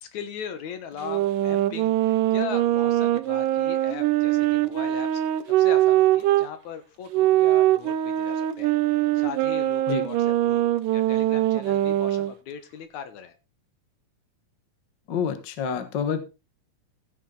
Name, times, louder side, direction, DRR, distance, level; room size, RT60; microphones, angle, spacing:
voice 1, 0.0-8.7 9.1-10.6 10.9-13.3, left 7 dB, 70° left, 10 dB, 2.5 m, -39 dB
sound 1, 1.0-6.5 7.1-12.3, right 14 dB, 90° right, 2.3 m, -22 dB
voice 2, 15.1-16.2, left 7 dB, 50° left, 10 dB, 1.4 m, -27 dB
15.0 x 7.4 x 3.8 m, 0.28 s
omnidirectional pair, 3.6 m